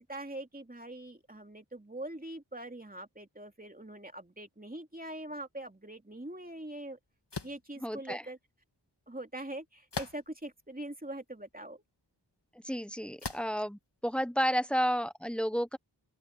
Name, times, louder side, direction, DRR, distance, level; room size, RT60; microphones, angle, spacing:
voice 1, 0.0-7.0 7.4-8.4 9.1-11.8, right 1 dB, 20° right, 3.0 m, -43 dB
sound 1, 7.3-7.6 9.9-10.5 11.2-11.3 13.2-13.6, left 4 dB, 75° left, 2.1 m, -39 dB
voice 2, 7.8-8.2 12.6-15.8, equal, 5° left, 1.3 m, -31 dB
open air
wide cardioid pair, 55°, 41 cm